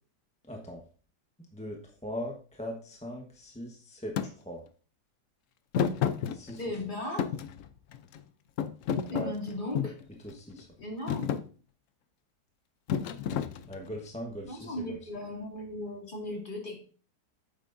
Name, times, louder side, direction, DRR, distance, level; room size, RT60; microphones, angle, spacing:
voice 1, 0.5-0.8 1.5-4.6 6.3-6.6 9.1-9.3 10.2-10.7 13.7-15.0 16.3-16.4, equal, 5° left, 0 dB, 0.9 m, -40 dB
Thump thud, 4.2-4.3 5.7-6.8 7.2-8.2 8.6-10.0 10.6-10.8 11.1-11.5 12.9-14.0, left 8 dB, 65° left, 0.8 m, -31 dB
voice 2, 6.6-7.3 9.1-9.9 10.8-11.4 14.4-16.8, left 1 dB, 30° left, -1 dB, 2.2 m, -37 dB
9.2 x 7.2 x 2.6 m, 0.40 s
omnidirectional pair, 1.8 m